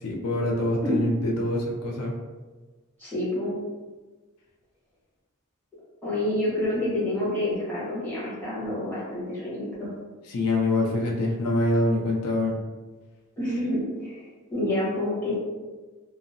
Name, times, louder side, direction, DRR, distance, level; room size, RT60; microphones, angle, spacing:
voice 1, 0.0-2.1 10.3-12.5, left 1 dB, 85° left, -1 dB, 0.5 m, -25 dB
voice 2, 3.0-3.6 6.0-9.9 13.4-15.4, left 1 dB, 10° left, -10 dB, 1.0 m, -28 dB
2.7 x 2.0 x 2.5 m, 1.3 s
head